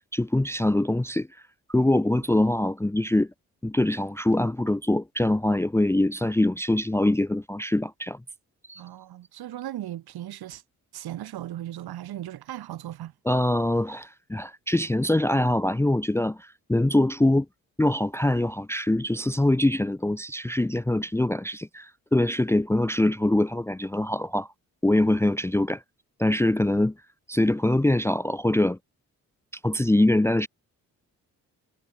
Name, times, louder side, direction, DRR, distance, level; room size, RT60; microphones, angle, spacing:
voice 1, 0.1-1.3 1.7-3.3 3.6-8.2 8.7-8.8 13.3-17.5 17.8-24.5 24.8-25.8 26.2-26.9 27.3-28.8 29.6-30.5, left 1 dB, 5° left, 0.7 m, -23 dB
voice 2, 8.8-10.6 10.9-13.1, right 13 dB, 75° right, 3.1 m, -37 dB
supercardioid pair, 50°, 38 cm